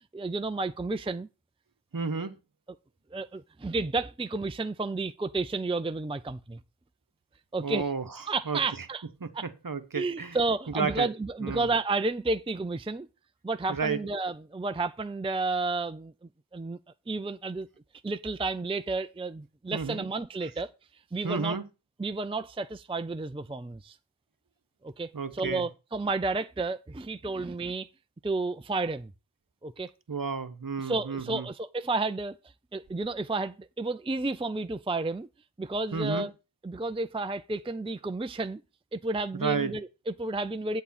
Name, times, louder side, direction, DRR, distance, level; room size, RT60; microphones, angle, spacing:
voice 1, 0.1-1.3 3.1-6.6 7.5-7.9 8.3-9.0 9.3-9.5 9.9-13.1 13.4-16.1 16.5-16.8 17.1-17.7 18.0-20.7 21.1-21.6 22.0-24.0 24.8-27.9 28.2-29.1 29.6-29.9 30.8-32.4 32.7-35.3 35.6-36.3 36.6-38.6 38.9-40.8, right 3 dB, 15° right, 0.5 m, -31 dB
voice 2, 1.9-2.3 7.6-8.0 8.5-8.6 9.2-10.4 10.7-11.1 11.4-11.7 13.7-14.0 19.7-20.1 21.2-21.6 25.1-25.7 30.1-31.5 35.9-36.3 39.4-39.8, right 5 dB, 50° right, 1.1 m, -31 dB
8.5 x 8.2 x 4.3 m
wide cardioid pair, 55°, 44 cm